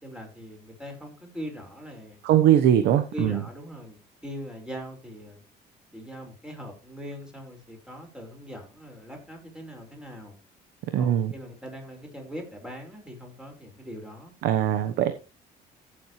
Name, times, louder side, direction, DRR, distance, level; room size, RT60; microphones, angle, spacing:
voice 1, 0.0-2.2 3.1-5.4 5.9-10.3 11.0-14.3, equal, 5° right, 2 dB, 5.0 m, -41 dB
voice 2, 2.2-3.4 10.9-11.3 14.4-15.1, right 10 dB, 80° right, 9 dB, 1.1 m, -21 dB
14.5 x 7.8 x 3.2 m, 0.30 s
cardioid pair, 110°, 17 cm